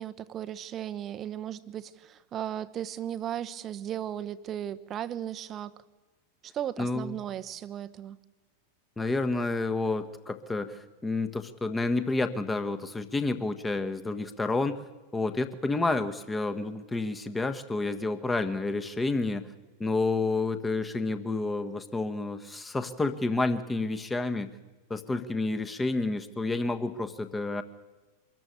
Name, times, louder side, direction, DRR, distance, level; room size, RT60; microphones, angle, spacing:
voice 1, 0.0-5.7 6.4-8.2, right 10 dB, 30° right, 14 dB, 0.9 m, -36 dB
voice 2, 6.8-7.2 9.0-14.8 15.1-19.5 19.8-24.5 24.9-27.6, left 3 dB, 10° left, 9 dB, 1.4 m, -29 dB
23.5 x 14.0 x 9.4 m, 1.2 s
figure-of-eight pair, 90°, 0 cm